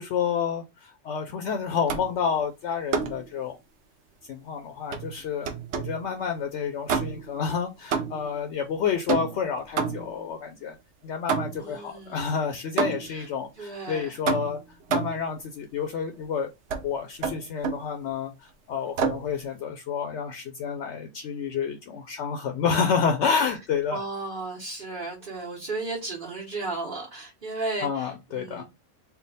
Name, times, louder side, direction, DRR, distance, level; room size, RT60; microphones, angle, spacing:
voice 1, 0.0-3.5 4.3-5.5 5.8-10.8 11.0-14.6 14.9-16.5 16.8-18.3 18.7-24.0 27.8-28.6, left 6 dB, 70° left, 0.8 m, -29 dB
sound 1, 1.9-2.2 2.9-3.3 4.9-6.0 6.9-7.4 7.9-8.4 9.1-10.2 11.3-11.8 12.8-13.2 14.3-15.3 16.7-16.9 17.2-17.9 19.0-19.3, right 6 dB, 70° right, 0.9 m, -29 dB
voice 2, 11.6-12.2 13.1-13.3 13.6-14.2 23.9-28.6, right 3 dB, 45° right, 1.2 m, -34 dB
3.5 x 2.2 x 3.9 m
omnidirectional pair, 1.3 m